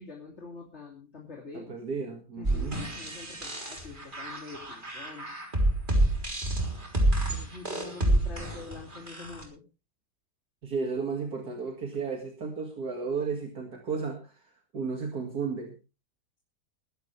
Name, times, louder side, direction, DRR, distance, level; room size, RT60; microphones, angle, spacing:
voice 1, 0.0-1.7 2.4-5.3 7.3-9.6, left 4 dB, 40° left, 0 dB, 3.2 m, -45 dB
voice 2, 1.5-2.8 10.6-14.5 14.7-15.8, right 5 dB, 70° right, 2 dB, 2.7 m, -33 dB
sound 1, 2.4-9.4, right 1 dB, 30° right, 3.9 m, -28 dB
21.5 x 11.0 x 3.3 m, 0.31 s
omnidirectional pair, 1.7 m